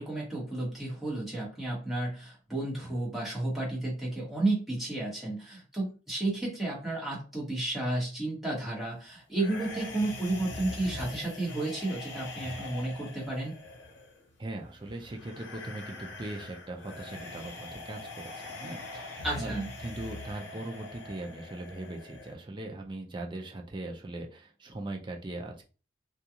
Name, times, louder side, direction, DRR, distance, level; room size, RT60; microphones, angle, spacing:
voice 1, 0.0-13.5 19.2-19.7, right 2 dB, ahead, -6 dB, 1.2 m, -32 dB
sound 1, 9.3-22.3, left 2 dB, 70° left, 0.7 m, -43 dB
voice 2, 14.4-25.7, right 2 dB, 25° right, 2 dB, 0.5 m, -40 dB
2.4 x 2.4 x 2.8 m, 0.34 s
head